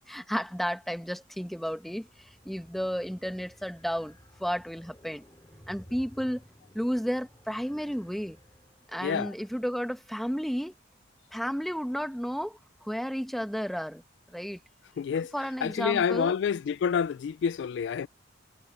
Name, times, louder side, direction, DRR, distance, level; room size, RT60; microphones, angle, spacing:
voice 1, 0.1-5.2 5.7-6.4 6.7-8.4 8.9-10.7 11.3-14.0 14.3-14.6 15.1-16.3, equal, ahead, 1.2 m, -32 dB
sound 1, 1.8-9.1, equal, 20° left, 6.6 m, -55 dB
voice 2, 9.0-9.3 15.0-15.3 15.6-18.1, left 7 dB, 65° left, 0.3 m, -28 dB
head